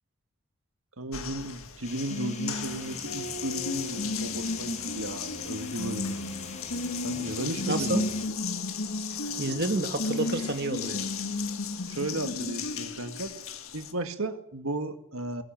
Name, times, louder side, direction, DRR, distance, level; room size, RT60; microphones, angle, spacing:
voice 1, 1.0-6.2 7.0-8.0 11.9-13.3 13.7-15.4, right 2 dB, 70° right, 8 dB, 2.1 m, -35 dB
Water tap faucet, 1.1-13.9, left 4 dB, 70° left, 1.9 m, -33 dB
sound 1, 1.8-8.3, left 3 dB, 30° left, 2.2 m, -43 dB
voice 2, 7.7-8.0 9.4-11.1, right 2 dB, 50° right, 7 dB, 2.1 m, -29 dB
22.0 x 18.5 x 7.6 m, 0.76 s
head